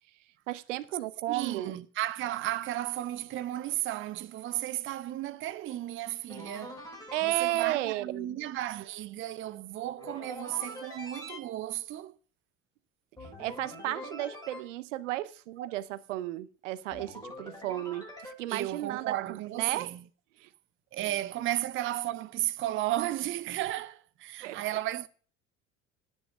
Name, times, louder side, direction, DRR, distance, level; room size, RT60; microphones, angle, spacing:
voice 1, 0.5-1.8 7.1-8.4 13.2-19.9 20.4-20.5 24.4-24.6, right 15 dB, 65° right, 0.7 m, -34 dB
voice 2, 1.3-6.8 7.2-12.2 15.6-15.7 18.5-20.0 20.9-25.1, right 14 dB, 30° right, 0.6 m, -34 dB
sound 1, 6.3-7.7 10.0-11.4 13.2-14.6 16.9-18.3, left 1 dB, 10° left, 6.9 m, -44 dB
10.0 x 8.0 x 6.0 m
figure-of-eight pair, 60°, 40 cm